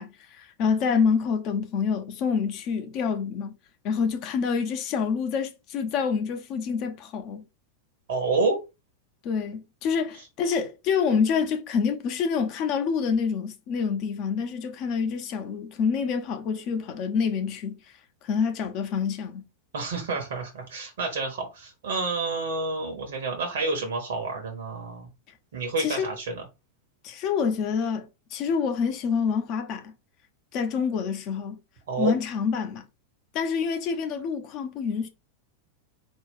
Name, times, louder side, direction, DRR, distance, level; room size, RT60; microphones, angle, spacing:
voice 1, 0.0-3.6 3.8-7.4 9.2-19.4 25.8-26.1 27.0-29.9 30.5-31.6 32.0-32.8 33.3-35.1, left 6 dB, 40° left, 0.6 m, -27 dB
voice 2, 8.1-8.6 19.7-25.1 25.5-26.4 31.9-32.1, right 3 dB, 55° right, 0.9 m, -29 dB
4.1 x 2.3 x 3.6 m
figure-of-eight pair, 90°, 0 cm